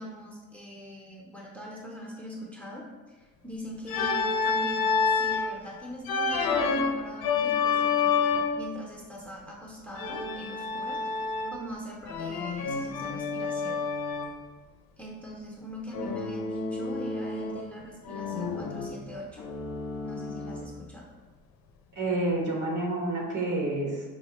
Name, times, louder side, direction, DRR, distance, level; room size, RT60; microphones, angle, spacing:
voice 1, 0.0-13.8 15.0-19.4 20.0-21.0, equal, 5° left, -3 dB, 0.7 m, -42 dB
Organ, 3.9-5.5 6.0-8.7 10.0-11.7 12.1-14.4 15.9-17.7 18.0-20.8, left 5 dB, 75° left, 0.5 m, -29 dB
voice 2, 22.0-24.0, right 2 dB, 55° right, -1 dB, 1.1 m, -29 dB
4.9 x 2.0 x 2.9 m, 1.3 s
cardioid pair, 75°, 36 cm